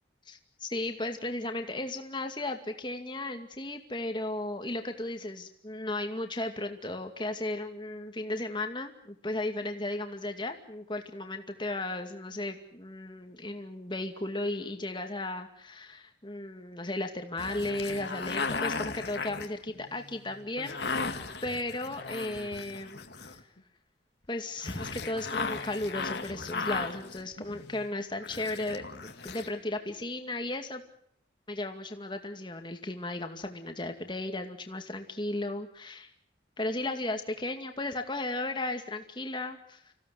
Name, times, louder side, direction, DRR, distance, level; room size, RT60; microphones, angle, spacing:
voice 1, 0.3-21.2 21.4-23.0 23.3-23.5 24.3-30.8 31.5-36.1 36.6-39.9, left 2 dB, 25° left, 5 dB, 2.3 m, -35 dB
sound 1, 17.4-23.6 24.6-27.9 28.2-29.5, left 4 dB, 65° left, 2.1 m, -36 dB
26.5 x 16.5 x 9.4 m, 0.67 s
head